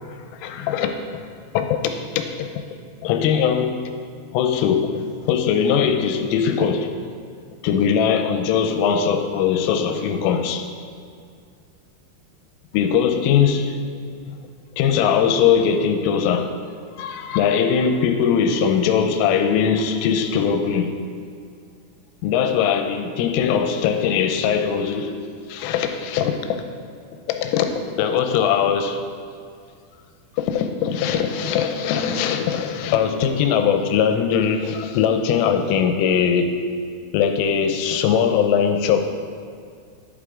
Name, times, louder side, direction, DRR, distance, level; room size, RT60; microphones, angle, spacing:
voice 1, 0.4-1.2 1.5-2.5 3.0-3.8 4.3-6.9 7.6-10.7 12.7-13.8 14.3-14.4 14.8-16.5 17.0-20.9 22.2-25.2 25.5-26.6 27.3-27.7 28.0-29.0 30.4-36.6 37.1-39.1, left 7 dB, 90° left, 6 dB, 3.2 m, -20 dB
11.0 x 8.4 x 3.7 m, 2.2 s
omnidirectional pair, 5.8 m